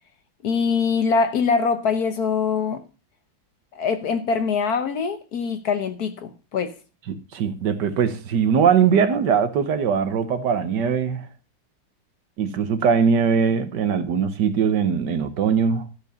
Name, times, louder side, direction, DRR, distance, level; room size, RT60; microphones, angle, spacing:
voice 1, 0.4-2.8 3.7-6.8, left 5 dB, 60° left, 1.3 m, -23 dB
voice 2, 7.1-11.3 12.4-15.9, right 7 dB, 65° right, 1.5 m, -21 dB
13.5 x 4.8 x 6.7 m
omnidirectional pair, 2.1 m